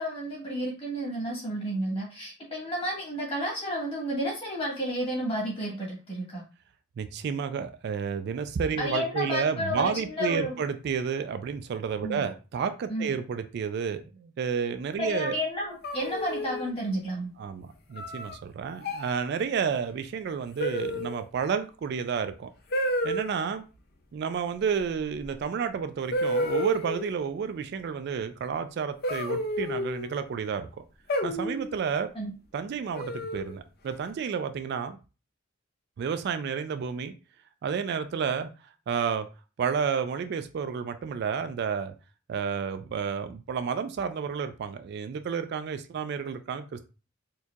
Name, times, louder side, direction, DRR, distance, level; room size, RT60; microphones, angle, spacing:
voice 1, 0.0-6.4 8.8-10.6 12.0-12.2 12.9-13.1 15.0-17.3 32.1-32.3, equal, 30° left, -3 dB, 1.5 m, -31 dB
voice 2, 7.0-15.3 17.4-22.5 23.0-23.6 24.1-30.7 31.2-32.1 32.5-35.0 36.0-37.1 37.6-38.5 38.9-39.3 39.6-41.9 42.3-46.9, right 6 dB, 55° right, 10 dB, 0.3 m, -31 dB
sound 1, 15.8-16.7 18.0-18.3 18.8-19.2 20.6-21.2 22.7-23.3 25.2-25.3 26.1-27.1 29.0-30.1 31.1-31.7 32.9-33.5, equal, 50° left, 0.5 m, -30 dB
4.4 x 2.7 x 2.4 m, 0.32 s
head